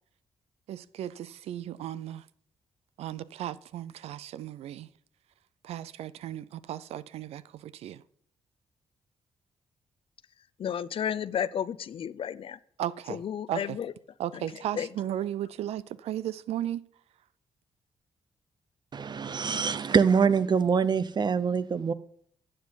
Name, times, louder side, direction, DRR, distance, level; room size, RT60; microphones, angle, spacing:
voice 1, 0.7-2.2 3.0-4.9 5.6-8.0 12.8-13.2 13.5-13.8 14.2-16.8, right 12 dB, 75° right, 0.4 m, -35 dB
voice 2, 10.6-12.6 13.1-13.9 14.7-14.9, left 9 dB, 60° left, 0.5 m, -32 dB
voice 3, 18.9-21.9, right 6 dB, 45° right, 0.7 m, -24 dB
11.0 x 7.7 x 4.0 m
supercardioid pair, 55°, 11 cm